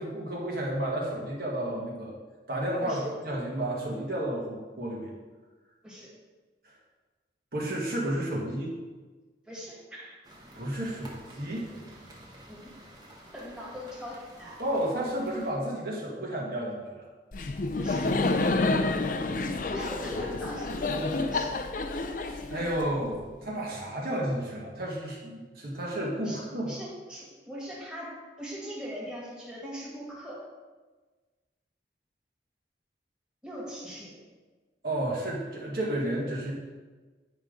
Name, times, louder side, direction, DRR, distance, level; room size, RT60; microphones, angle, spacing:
voice 1, 0.0-2.1 2.5-5.1 7.5-8.7 10.5-11.7 14.6-17.0 22.2-26.7 34.8-36.5, right 1 dB, 55° right, -4 dB, 1.6 m, -32 dB
voice 2, 9.5-10.2 12.5-12.7 13.3-14.6 17.7-18.1 19.7-21.6 26.2-26.4 26.7-30.4 33.4-34.3, equal, 5° right, -7 dB, 1.9 m, -40 dB
sound 1, 10.2-15.5, right 1 dB, 25° right, 1.0 m, -50 dB
Laughter, 17.3-23.1, left 2 dB, 50° left, 0.5 m, -29 dB
9.5 x 5.2 x 3.8 m, 1.3 s
head